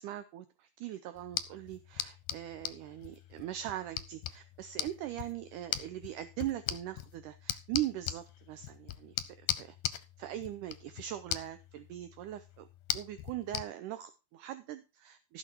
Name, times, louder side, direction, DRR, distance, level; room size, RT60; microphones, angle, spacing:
voice 1, 0.0-12.7 12.9-15.4, right 13 dB, 80° right, 11 dB, 1.9 m, -41 dB
sound 1, 1.2-13.7, left 12 dB, 75° left, 2.1 m, -40 dB
15.5 x 6.3 x 4.5 m, 0.29 s
omnidirectional pair, 4.4 m